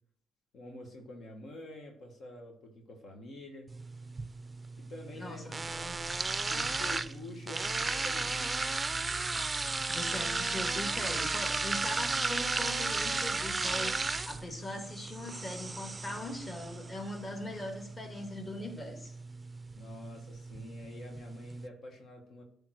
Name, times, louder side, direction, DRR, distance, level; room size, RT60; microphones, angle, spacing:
voice 1, 0.5-3.7 4.8-5.5 6.5-8.7 17.4-17.6 19.7-22.4, left 2 dB, 65° left, 1.4 m, -47 dB
sound 1, 3.7-21.7, right 3 dB, 25° right, 0.5 m, -35 dB
voice 2, 5.1-6.1 9.9-19.1, left 1 dB, 25° left, 1.9 m, -41 dB
10.5 x 3.5 x 6.3 m
cardioid pair, 90°, 0 cm